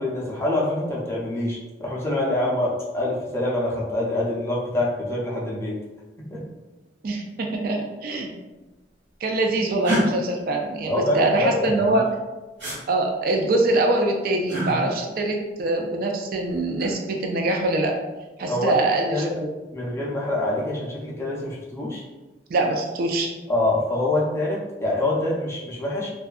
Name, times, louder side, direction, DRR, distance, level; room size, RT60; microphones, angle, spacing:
voice 1, 0.0-5.8 6.3-6.5 10.9-12.0 18.5-18.7 19.1-19.3 19.7-22.0 23.5-26.1, left 1 dB, 15° left, -5 dB, 0.5 m, -25 dB
voice 2, 7.0-8.3 9.2-12.1 12.9-17.9 18.4-19.5 22.5-23.3, right 2 dB, 55° right, 2 dB, 0.3 m, -23 dB
sound 1, 9.8-10.0 12.6-12.8 14.5-14.7 16.5-16.9, equal, 80° right, 1.1 m, -25 dB
2.6 x 2.3 x 2.3 m, 1.1 s
head